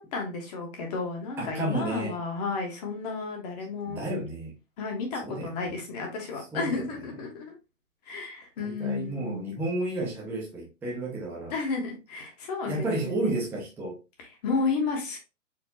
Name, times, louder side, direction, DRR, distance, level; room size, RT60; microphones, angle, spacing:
voice 1, 0.0-4.0 4.8-7.5 8.1-9.5 11.5-13.4 14.4-15.2, left 4 dB, 30° left, 1.3 m, -32 dB
voice 2, 1.4-2.2 3.8-4.5 5.2-5.5 6.5-6.8 8.6-11.6 12.7-14.0, right 2 dB, 5° right, 0.8 m, -32 dB
4.5 x 3.3 x 2.8 m
hypercardioid pair, 160°, 38 cm